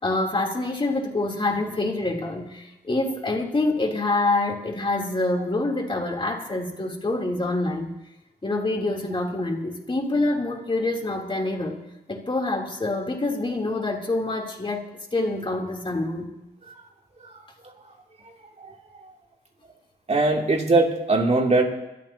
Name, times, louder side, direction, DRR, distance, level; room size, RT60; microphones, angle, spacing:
voice 1, 0.0-7.9 8.4-11.8 12.1-14.8 15.1-16.3, left 2 dB, 30° left, 0 dB, 3.6 m, -26 dB
voice 2, 20.1-21.6, right 2 dB, 40° right, 0 dB, 3.0 m, -21 dB
24.5 x 13.0 x 3.0 m, 0.95 s
cardioid pair, 50°, 17 cm